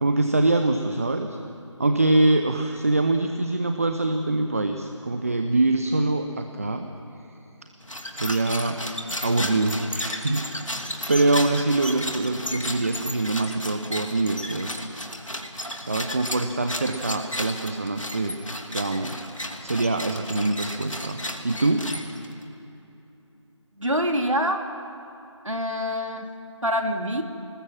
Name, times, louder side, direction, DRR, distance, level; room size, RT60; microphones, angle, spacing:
voice 1, 0.0-1.3 1.8-6.8 8.1-8.8 9.2-10.8 11.1-14.9 15.9-18.4 18.7-19.2 19.6-21.9, right 2 dB, 30° right, 6 dB, 0.8 m, -24 dB
sound 1, 7.8-22.4, left 1 dB, 85° left, 2.7 m, -34 dB
voice 2, 23.8-24.7 25.4-26.3 26.6-27.2, equal, 85° right, 4 dB, 2.6 m, -25 dB
27.0 x 20.5 x 7.4 m, 3.0 s
figure-of-eight pair, 165°, 16 cm